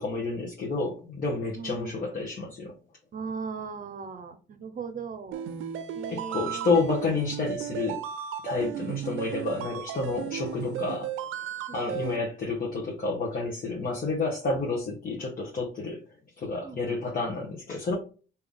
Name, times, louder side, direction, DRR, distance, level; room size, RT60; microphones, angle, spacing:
voice 1, 0.0-2.7 6.1-8.0 8.4-11.1 11.7-16.0 16.4-17.9, left 3 dB, 45° left, -1 dB, 1.1 m, -30 dB
voice 2, 1.5-2.1 3.1-5.4 5.9-6.8 8.6-8.8 11.7-11.8 16.5-16.9, right 5 dB, 40° right, 9 dB, 0.7 m, -38 dB
sound 1, 5.3-12.2, right 9 dB, 80° right, 0.5 m, -35 dB
3.4 x 2.8 x 3.7 m, 0.37 s
cardioid pair, 90°, 20 cm